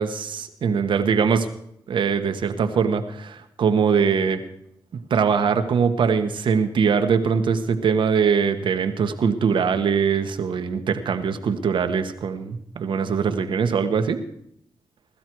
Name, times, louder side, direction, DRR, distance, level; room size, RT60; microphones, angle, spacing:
voice 1, 0.0-1.5 1.9-4.4 5.1-14.2, right 6 dB, 80° right, 8 dB, 1.2 m, -22 dB
17.5 x 13.0 x 4.6 m, 0.73 s
cardioid pair, 55°, 8 cm